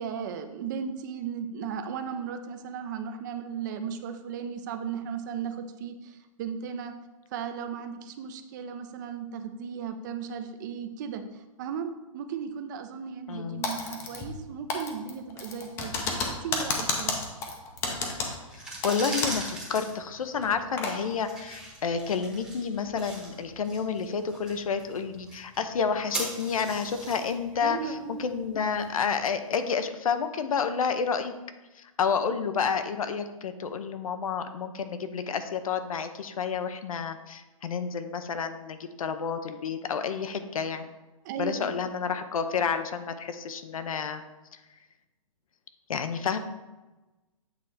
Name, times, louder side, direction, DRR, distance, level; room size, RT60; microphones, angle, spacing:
voice 1, 0.0-6.9 7.3-15.9 16.4-17.2 27.6-28.3 41.2-41.7, right 7 dB, 35° right, 7 dB, 0.6 m, -36 dB
voice 2, 13.3-13.6 18.8-27.8 28.2-31.3 31.8-40.9 41.4-44.2 45.9-46.4, left 6 dB, 75° left, 9 dB, 0.7 m, -30 dB
Typing, 13.6-14.4 14.7-19.5 19.8-19.9 20.4-21.0, left 4 dB, 15° left, 0.6 m, -31 dB
sound 1, 18.4-29.3, right 2 dB, 5° right, 1.0 m, -41 dB
8.1 x 3.3 x 4.1 m, 1.1 s
hypercardioid pair, 160°, 18 cm